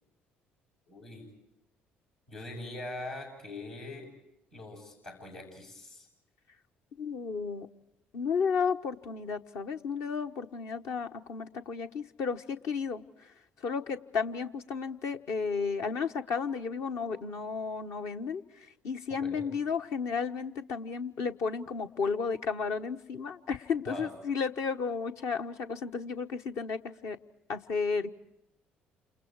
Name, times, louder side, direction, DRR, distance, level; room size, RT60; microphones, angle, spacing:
voice 1, 0.9-1.3 2.3-4.1 4.5-6.1 19.2-19.5 23.9-24.1, left 1 dB, 80° left, -4 dB, 7.8 m, -42 dB
voice 2, 7.0-7.7 8.1-13.0 13.6-27.2 27.5-28.1, left 5 dB, 60° left, 6 dB, 1.1 m, -33 dB
29.0 x 28.0 x 4.7 m, 0.84 s
figure-of-eight pair, 50°, 6 cm